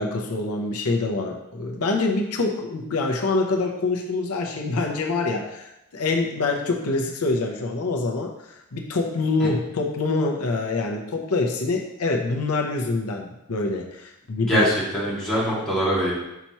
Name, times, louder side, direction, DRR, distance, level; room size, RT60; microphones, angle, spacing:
voice 1, 0.0-14.7, left 3 dB, 90° left, 1 dB, 0.8 m, -25 dB
voice 2, 14.5-16.2, equal, 5° left, -9 dB, 2.2 m, -23 dB
5.9 x 5.5 x 3.0 m, 0.89 s
head